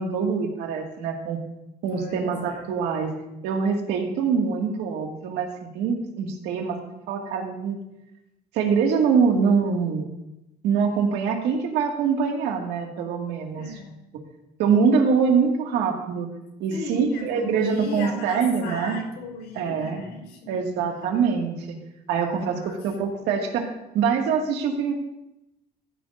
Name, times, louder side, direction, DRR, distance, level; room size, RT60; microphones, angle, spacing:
voice 1, 0.0-1.4 1.8-3.1 3.4-6.8 7.1-7.8 8.5-10.1 10.6-13.7 14.6-16.3 16.6-19.0 19.6-20.0 20.5-21.8 22.1-23.7 23.9-24.9, right 6 dB, 90° right, 2 dB, 2.0 m, -24 dB
voice 2, 1.9-2.6 13.5-13.9 16.7-20.7 22.4-22.8, left 2 dB, 85° left, 1 dB, 4.0 m, -36 dB
14.5 x 11.0 x 2.6 m, 0.92 s
cardioid pair, 110°, 17 cm